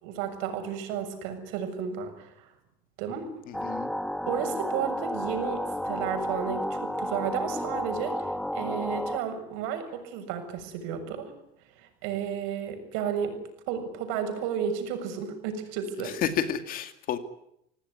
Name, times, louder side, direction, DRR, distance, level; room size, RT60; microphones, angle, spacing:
voice 1, 0.0-2.5 3.0-3.3 4.2-11.3 11.8-13.4 13.7-16.1, right 7 dB, 80° right, 6 dB, 7.1 m, -32 dB
voice 2, 3.5-3.9 16.0-17.2, left 8 dB, 45° left, 9 dB, 2.5 m, -31 dB
sound 1, 3.5-9.2, equal, ahead, 1.3 m, -32 dB
27.5 x 18.5 x 9.9 m, 0.77 s
cardioid pair, 160°, 20 cm